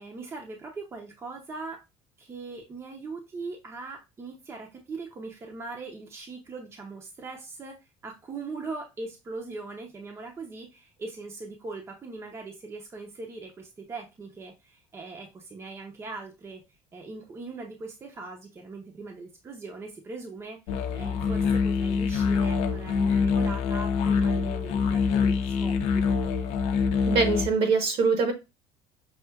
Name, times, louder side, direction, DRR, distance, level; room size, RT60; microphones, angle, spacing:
voice 1, 0.0-1.8 2.2-7.8 8.0-16.6 16.9-26.2, right 3 dB, 25° right, 1 dB, 0.7 m, -40 dB
sound 1, 20.7-27.5, left 5 dB, 70° left, 0.5 m, -25 dB
voice 2, 27.1-28.3, right 4 dB, 55° right, 6 dB, 1.1 m, -23 dB
5.6 x 2.4 x 2.3 m, 0.24 s
cardioid pair, 135°, 11 cm